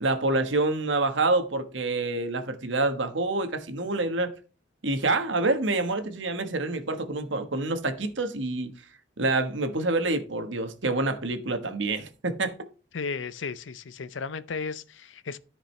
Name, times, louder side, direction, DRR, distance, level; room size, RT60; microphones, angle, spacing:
voice 1, 0.0-4.3 4.8-8.7 9.2-12.5, right 2 dB, 80° right, 1.3 m, -27 dB
voice 2, 12.9-15.4, left 5 dB, 85° left, 0.6 m, -34 dB
13.5 x 5.1 x 3.3 m
head